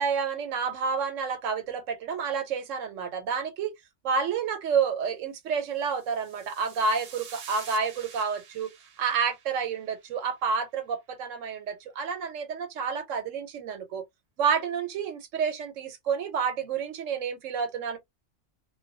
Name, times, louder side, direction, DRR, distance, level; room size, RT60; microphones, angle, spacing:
voice 1, 0.0-3.7 4.0-8.7 9.0-14.0 14.4-18.0, right 6 dB, 90° right, 1.0 m, -29 dB
sound 1, 5.8-10.3, right 7 dB, 65° right, 0.9 m, -48 dB
2.2 x 2.2 x 2.5 m
omnidirectional pair, 1.3 m